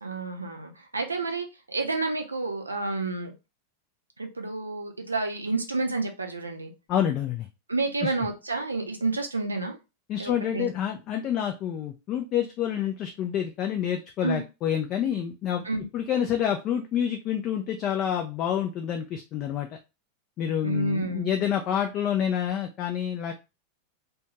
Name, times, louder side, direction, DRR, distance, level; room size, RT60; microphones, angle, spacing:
voice 1, 0.0-3.3 4.2-6.7 7.7-9.8 10.2-10.7 14.2-14.4 15.6-15.9 20.6-21.3, right 3 dB, 80° right, 4 dB, 0.5 m, -30 dB
voice 2, 6.9-7.5 8.0-8.1 10.1-15.7 15.9-19.7 20.4-23.3, left 9 dB, 35° left, 3 dB, 0.3 m, -28 dB
2.5 x 2.2 x 2.8 m, 0.27 s
figure-of-eight pair, 90°, 0 cm